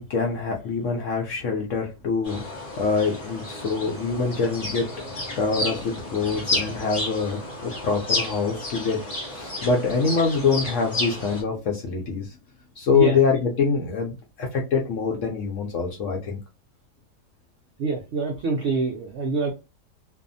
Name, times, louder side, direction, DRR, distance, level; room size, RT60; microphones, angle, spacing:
voice 1, 0.0-9.0 9.3-12.3 12.8-16.4, left 5 dB, 65° left, 1 dB, 0.8 m, -25 dB
sound 1, 2.2-11.4, left 2 dB, 35° left, 0.7 m, -32 dB
voice 2, 17.8-19.5, right 3 dB, 90° right, 2 dB, 0.6 m, -25 dB
2.6 x 2.3 x 2.5 m, 0.28 s
omnidirectional pair, 1.8 m